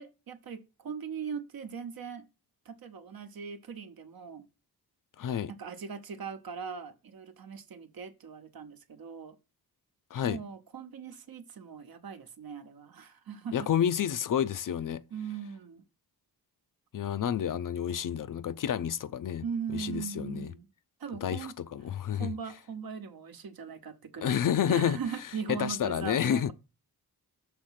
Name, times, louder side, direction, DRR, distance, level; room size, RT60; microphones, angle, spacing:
voice 1, 0.0-2.3 2.6-4.5 5.5-9.4 10.2-13.7 15.1-15.8 19.4-20.6 21.0-21.6 22.1-24.4 24.7-26.5, right 6 dB, 65° right, 0.9 m, -40 dB
voice 2, 5.2-5.5 10.1-10.4 13.5-15.0 16.9-19.4 19.7-20.5 21.2-22.3 24.2-25.0 25.5-26.5, left 9 dB, 55° left, 0.5 m, -29 dB
6.6 x 3.5 x 5.7 m
wide cardioid pair, 110°, 39 cm